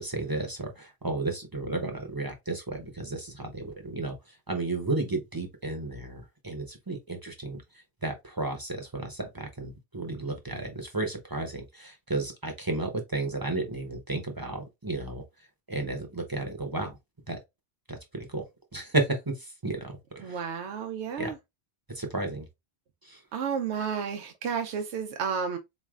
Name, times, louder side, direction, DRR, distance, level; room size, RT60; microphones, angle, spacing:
voice 1, 0.0-4.1 4.5-7.6 8.0-15.2 15.7-17.0 17.3-17.4 17.9-18.4 18.7-19.3 19.6-20.4 21.2-21.3 22.0-22.5 23.1-23.2, right 2 dB, 25° right, 0.7 m, -33 dB
voice 2, 20.2-21.4 23.3-25.6, right 6 dB, 90° right, 0.9 m, -31 dB
4.1 x 3.1 x 2.4 m
omnidirectional pair, 1.1 m